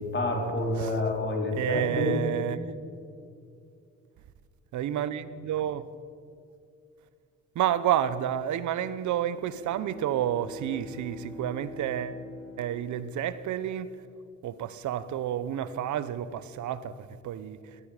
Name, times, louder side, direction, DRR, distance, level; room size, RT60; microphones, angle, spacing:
voice 1, 0.0-2.2, left 2 dB, 40° left, 3.4 m, -28 dB
voice 2, 1.5-2.6 4.7-5.9 7.5-12.2 12.6-14.0 14.4-17.6, right 10 dB, 70° right, 0.8 m, -30 dB
Bowed string instrument, 9.2-13.9, left 2 dB, 85° left, 4.5 m, -45 dB
17.5 x 13.0 x 5.0 m
cardioid pair, 90°, 30 cm